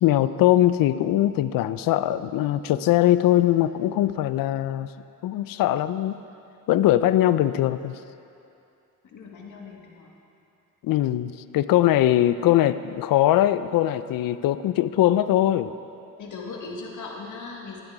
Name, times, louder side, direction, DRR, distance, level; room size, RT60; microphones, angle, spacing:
voice 1, 0.0-4.9 5.2-6.2 6.7-8.0 10.8-15.7, left 13 dB, 80° left, 13 dB, 0.5 m, -21 dB
voice 2, 9.0-10.1 16.2-17.8, left 4 dB, 65° left, -1 dB, 1.9 m, -38 dB
12.0 x 10.5 x 4.8 m, 2.7 s
cardioid pair, 95°, 33 cm